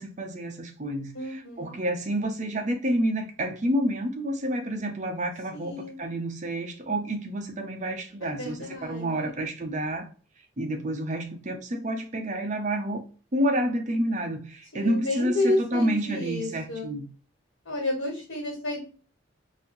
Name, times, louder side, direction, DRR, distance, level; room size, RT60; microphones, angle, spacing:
voice 1, 0.0-10.1 10.6-13.0 13.3-17.1, right 1 dB, 35° right, 0.6 m, -29 dB
voice 2, 1.1-1.8 5.5-6.0 8.2-9.3 14.7-16.9 17.6-18.8, left 1 dB, 85° left, 1.7 m, -31 dB
4.2 x 2.6 x 2.6 m
head